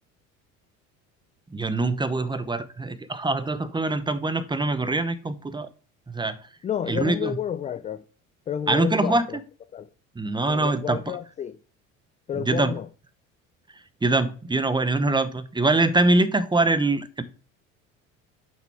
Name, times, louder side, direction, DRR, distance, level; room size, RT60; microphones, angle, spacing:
voice 1, 1.5-5.7 6.1-6.4 6.9-7.4 8.7-9.4 10.1-11.2 12.4-12.7 14.0-17.2, right 2 dB, 10° right, 0.9 m, -24 dB
voice 2, 6.6-8.0 8.5-9.4 9.7-9.9 10.4-11.6 12.3-12.9, left 8 dB, 20° left, 0.3 m, -30 dB
8.9 x 6.0 x 3.5 m
hypercardioid pair, 65°, 41 cm